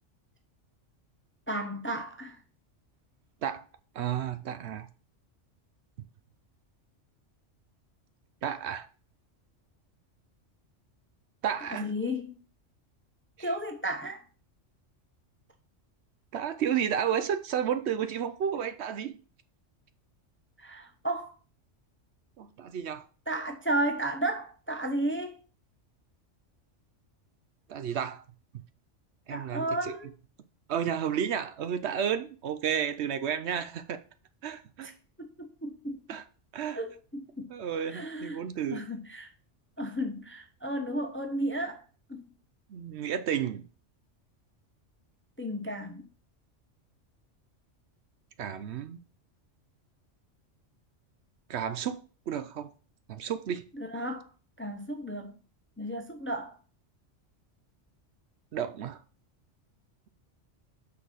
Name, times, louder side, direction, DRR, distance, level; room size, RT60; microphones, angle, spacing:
voice 1, 1.5-2.4 11.7-12.4 13.4-14.2 20.6-21.3 23.3-25.4 29.3-30.1 34.8-34.9 35.2-36.0 36.7-37.5 37.9-38.4 38.7-39.3 39.8-41.8 42.1-42.2 45.4-46.0 53.7-54.3 54.6-55.4 55.8-56.5, right 1 dB, 15° left, 0.6 m, -33 dB
voice 2, 3.9-4.9 8.4-8.9 11.4-11.9 13.4-13.5 16.3-19.2 22.4-23.1 27.7-28.2 29.3-30.0 30.7-34.0 34.4-34.9 36.1-36.2 36.5-36.8 37.5-38.9 42.7-43.6 48.4-49.0 51.5-52.0 52.3-52.7 53.1-53.6 58.5-59.0, right 8 dB, 65° right, 0.8 m, -32 dB
6.0 x 3.9 x 6.2 m
omnidirectional pair, 1.3 m